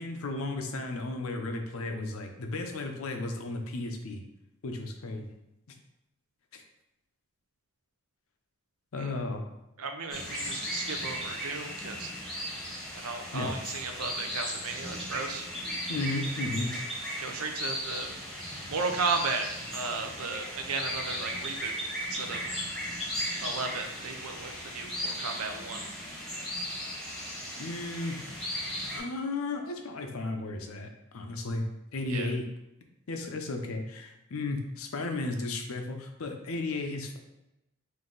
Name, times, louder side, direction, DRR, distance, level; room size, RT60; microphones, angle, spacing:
voice 1, 0.0-4.2 4.6-5.4 6.5-6.6 8.9-9.4 13.3-13.6 15.9-16.7 27.6-28.4 28.9-31.7 31.9-32.5 33.1-37.2, left 2 dB, 70° left, 5 dB, 0.6 m, -34 dB
voice 2, 9.8-12.1 13.0-15.4 17.2-18.1 18.7-19.5 19.7-21.8 22.0-22.6 23.4-25.8 32.1-32.3, right 4 dB, 80° right, 5 dB, 0.6 m, -34 dB
sound 1, 10.1-29.0, equal, ahead, 0.9 m, -36 dB
3.9 x 2.7 x 3.8 m, 0.91 s
head